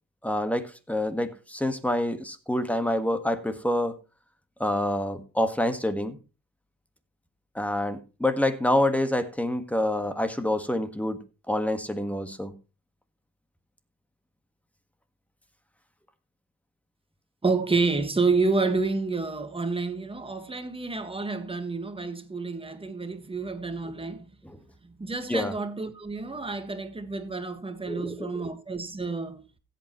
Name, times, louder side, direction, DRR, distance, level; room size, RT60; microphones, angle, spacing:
voice 1, 0.2-4.0 4.6-6.2 7.5-11.2 11.5-12.5 24.4-24.6 25.3-25.5 27.9-28.4, left 1 dB, 5° left, 1.6 m, -27 dB
voice 2, 17.4-24.3 24.8-29.4, right 3 dB, 20° right, 1.6 m, -29 dB
16.0 x 8.4 x 3.1 m
cardioid pair, 90°, 30 cm